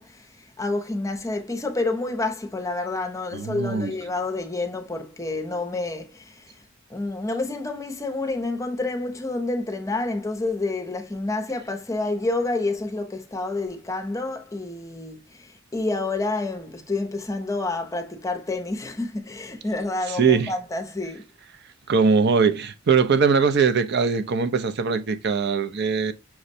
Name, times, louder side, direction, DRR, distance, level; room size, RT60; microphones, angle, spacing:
voice 1, 0.0-6.6 6.9-21.3, left 2 dB, 15° left, 0.6 m, -29 dB
voice 2, 3.3-3.9 20.1-20.5 21.9-26.1, right 5 dB, 55° right, 0.5 m, -21 dB
5.9 x 2.1 x 2.6 m
head